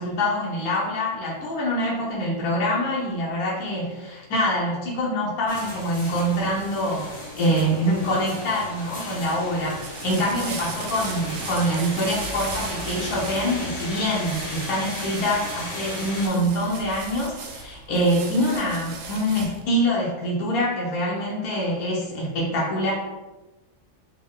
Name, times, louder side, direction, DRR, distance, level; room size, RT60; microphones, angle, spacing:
voice 1, 0.0-7.1 7.4-22.9, equal, 70° left, -5 dB, 1.3 m, -25 dB
sound 1, 5.5-16.3, left 1 dB, 25° left, 1.0 m, -36 dB
sound 2, 9.6-19.7, right 4 dB, 70° right, 0.9 m, -37 dB
3.6 x 2.2 x 3.6 m, 1.1 s
omnidirectional pair, 1.6 m